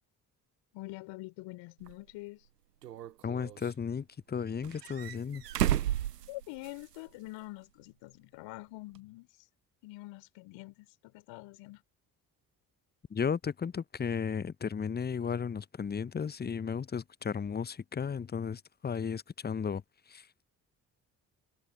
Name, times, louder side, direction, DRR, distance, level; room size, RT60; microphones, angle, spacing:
voice 1, 0.7-2.5 6.3-9.3 9.8-11.8, left 21 dB, 65° left, 3.8 m, -45 dB
sound 1, 1.8-1.9 2.8-3.7 4.6-7.0 7.3-7.4 9.0-9.1, right 12 dB, 90° right, 0.6 m, -33 dB
voice 2, 3.2-5.4 13.1-20.4, left 6 dB, 20° left, 0.8 m, -35 dB
figure-of-eight pair, 45°, 47 cm